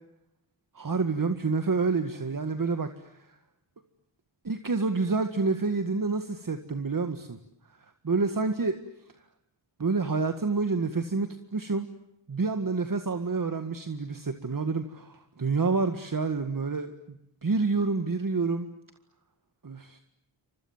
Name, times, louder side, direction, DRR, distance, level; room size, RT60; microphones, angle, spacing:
voice 1, 0.7-3.4 4.4-7.4 7.8-8.8 9.8-11.9 12.3-18.7 19.6-20.0, right 4 dB, 45° right, 8 dB, 1.9 m, -28 dB
29.0 x 26.5 x 7.4 m, 0.82 s
wide cardioid pair, 80°, 44 cm